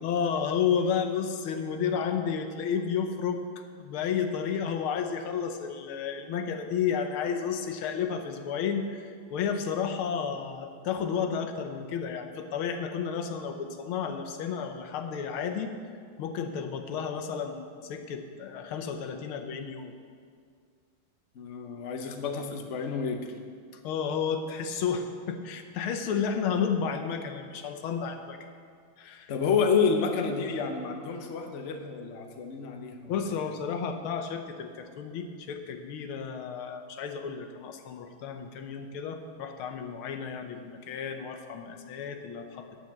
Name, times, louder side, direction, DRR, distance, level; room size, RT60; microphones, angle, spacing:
voice 1, 0.0-3.4 3.8-15.7 16.2-19.9 23.8-28.4 29.0-29.3 33.1-42.8, left 7 dB, 90° left, 5 dB, 1.7 m, -32 dB
voice 2, 21.3-23.3 29.3-33.1, left 5 dB, 55° left, 5 dB, 0.8 m, -29 dB
9.2 x 7.0 x 7.3 m, 2.1 s
omnidirectional pair, 2.3 m